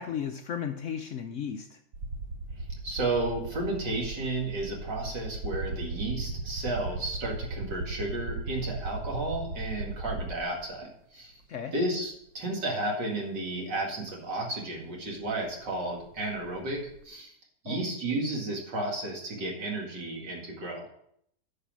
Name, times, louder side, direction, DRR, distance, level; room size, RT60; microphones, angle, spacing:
voice 1, 0.0-1.8 11.5-11.7 17.7-17.9, left 8 dB, 65° left, 6 dB, 0.7 m, -35 dB
sound 1, 1.9-10.7 11.8-11.9 14.1-14.2 14.4-17.0, right 2 dB, 60° right, 1.5 m, -37 dB
voice 2, 2.8-11.3 11.7-17.3 17.6-20.9, right 2 dB, 85° right, -1 dB, 2.8 m, -33 dB
10.0 x 4.9 x 6.0 m, 0.70 s
omnidirectional pair, 1.8 m